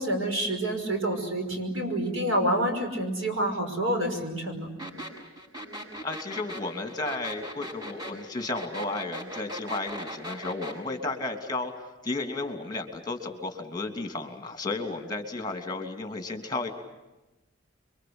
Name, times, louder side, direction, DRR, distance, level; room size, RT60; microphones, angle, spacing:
voice 1, 0.0-4.7, right 1 dB, 90° right, 5 dB, 5.8 m, -28 dB
sound 1, 4.8-10.8, equal, 20° right, 6.6 m, -38 dB
voice 2, 6.0-11.7 12.0-16.7, left 2 dB, 20° left, 6 dB, 3.0 m, -33 dB
28.5 x 24.0 x 7.9 m, 1.0 s
head